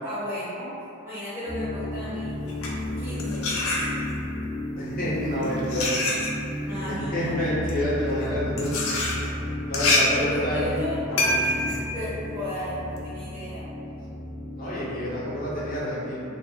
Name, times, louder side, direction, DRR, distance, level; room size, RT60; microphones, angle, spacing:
voice 1, 0.0-0.7 1.0-2.4 3.0-3.5 6.6-7.7 10.1-11.0 11.9-13.7 15.5-15.6, equal, 30° right, -15 dB, 0.8 m, -35 dB
sound 1, 1.5-15.8, left 1 dB, 5° left, 0.5 m, -33 dB
scraping-fork, 2.4-4.3 5.1-13.0, left 2 dB, 85° left, 0.4 m, -27 dB
voice 2, 4.8-6.0 6.5-6.8 7.1-8.7 9.6-10.8 14.5-16.2, equal, 45° left, -9 dB, 0.7 m, -28 dB
2.3 x 2.1 x 2.7 m, 2.6 s
head